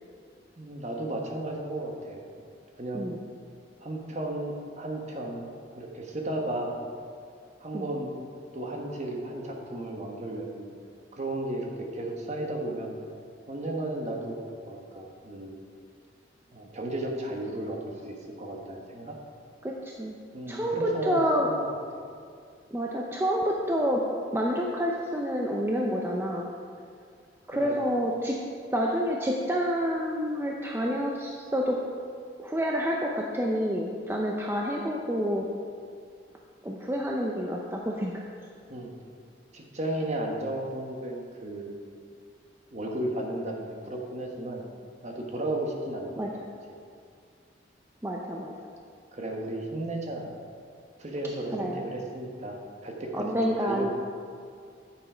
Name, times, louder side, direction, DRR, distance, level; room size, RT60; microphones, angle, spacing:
voice 1, 0.6-2.3 2.8-3.1 3.8-6.7 7.6-8.2 8.5-10.7 11.1-13.0 13.5-14.4 14.6-15.6 16.5-19.2 20.3-21.8 27.6-27.8 38.7-38.9 39.5-41.7 42.7-44.6 45.0-46.2 49.1-50.3 51.0-52.6 52.8-53.3 53.6-53.9, right 1 dB, 35° right, 1 dB, 1.3 m, -34 dB
voice 2, 19.6-20.1 20.5-21.5 22.7-24.0 24.3-26.4 27.5-28.4 28.7-31.8 32.4-35.5 36.6-38.2 46.2-46.3 48.0-48.5 51.5-51.8 53.1-53.9, equal, 15° right, -1 dB, 0.6 m, -28 dB
9.6 x 7.2 x 5.0 m, 2.2 s
head